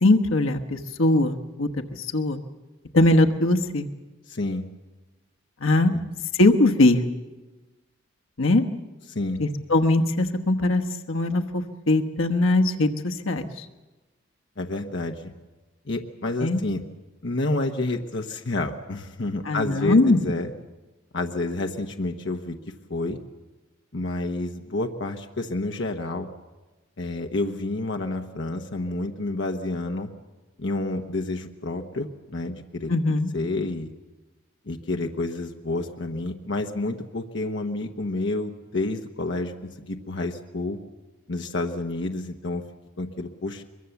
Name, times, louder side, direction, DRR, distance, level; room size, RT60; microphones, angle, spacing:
voice 1, 0.0-1.7 2.1-2.4 2.9-3.9 5.6-5.9 6.4-7.0 8.4-8.6 9.4-10.8 11.1-13.6 16.4-16.6 19.5-20.2 32.9-33.3, left 2 dB, 85° left, 5 dB, 1.2 m, -20 dB
voice 2, 4.3-4.7 5.9-6.0 9.1-9.4 14.6-15.3 15.9-16.8 17.2-20.5 21.1-22.6 22.9-23.2 23.9-26.3 27.0-30.1 30.6-32.9 33.3-33.9 34.7-40.8 41.3-42.6 43.0-43.6, left 2 dB, 65° left, 4 dB, 1.0 m, -29 dB
23.0 x 22.0 x 7.1 m, 1.2 s
head